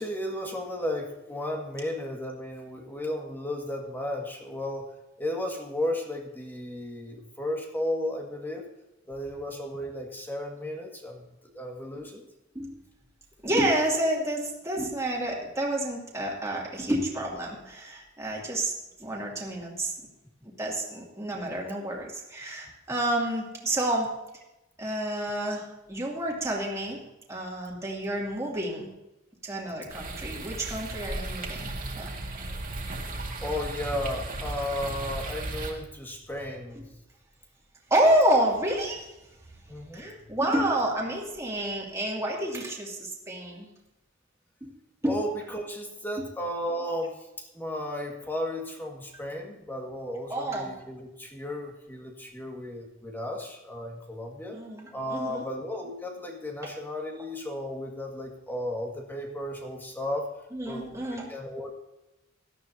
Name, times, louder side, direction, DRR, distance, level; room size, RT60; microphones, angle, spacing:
voice 1, 0.0-4.9 5.2-8.6 9.1-12.2 33.4-36.9 39.7-40.2 45.1-54.6 54.9-60.3 60.7-61.7, left 1 dB, 10° left, 1 dB, 1.9 m, -34 dB
voice 2, 13.4-18.7 19.0-19.9 20.6-24.1 24.8-27.0 27.3-28.9 29.4-32.1 37.9-39.1 39.9-43.7 44.6-44.7 45.0-45.2 46.2-46.3 50.3-50.7 54.5-55.5 56.6-56.7 60.5-61.3, right 1 dB, 15° right, -3 dB, 2.6 m, -29 dB
sound 1, 29.9-35.7, right 2 dB, 45° right, 2.1 m, -35 dB
17.0 x 12.5 x 2.8 m, 0.97 s
head